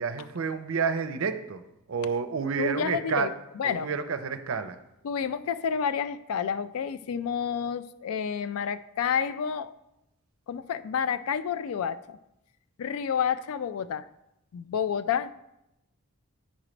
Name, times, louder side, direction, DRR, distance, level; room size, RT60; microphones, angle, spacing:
voice 1, 0.0-1.6 1.9-3.3 3.6-4.8, right 5 dB, 70° right, 10 dB, 0.5 m, -29 dB
voice 2, 2.6-3.3 3.6-3.9 5.0-9.7 10.5-12.2 12.8-14.1 14.5-15.3, left 7 dB, 75° left, 15 dB, 0.3 m, -29 dB
8.9 x 3.2 x 4.9 m, 0.87 s
head